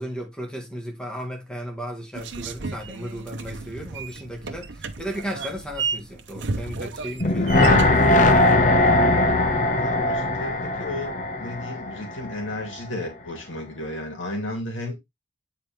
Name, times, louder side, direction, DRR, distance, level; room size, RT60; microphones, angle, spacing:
voice 1, 0.0-8.2, equal, 5° left, 1.8 m, -35 dB
sound 1, 2.1-8.6, right 4 dB, 60° right, 0.9 m, -33 dB
sound 2, 7.2-12.3 12.6-12.7, left 2 dB, 40° left, 0.9 m, -20 dB
voice 2, 9.7-15.0, left 2 dB, 70° left, 2.9 m, -34 dB
8.4 x 4.6 x 3.5 m
head